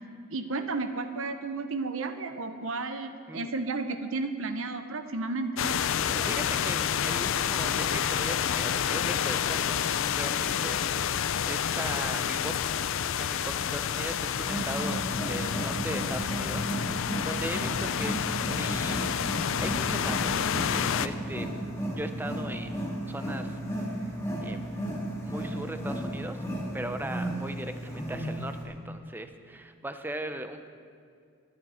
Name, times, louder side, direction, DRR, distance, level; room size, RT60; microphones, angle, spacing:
voice 1, 0.3-5.5, right 3 dB, 65° right, 8 dB, 0.9 m, -33 dB
sound 1, 5.6-21.1, left 8 dB, 60° left, 0.4 m, -29 dB
voice 2, 6.1-9.8 10.1-12.5 13.2-19.1 19.6-21.5 21.9-23.6 24.4-24.6 25.2-26.4 26.7-30.7, right 1 dB, 10° right, 8 dB, 0.6 m, -39 dB
Wild animals, 14.3-28.6, equal, 15° left, 2.1 m, -34 dB
22.0 x 9.5 x 4.3 m, 2.3 s
head